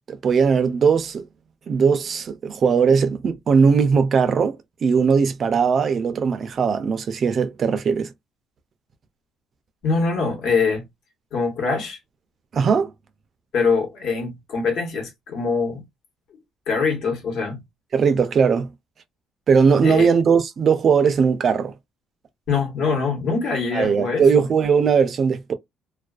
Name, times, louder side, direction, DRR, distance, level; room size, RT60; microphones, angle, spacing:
voice 1, 0.1-1.2 1.7-8.1 12.5-12.9 17.9-18.7 19.5-21.7 23.7-25.5, right 6 dB, 40° right, 0.4 m, -19 dB
voice 2, 9.8-10.8 11.3-12.0 13.5-15.8 16.7-17.6 19.8-20.1 22.5-24.4, left 4 dB, 65° left, 1.1 m, -23 dB
2.3 x 2.3 x 2.3 m
cardioid pair, 145°, 0 cm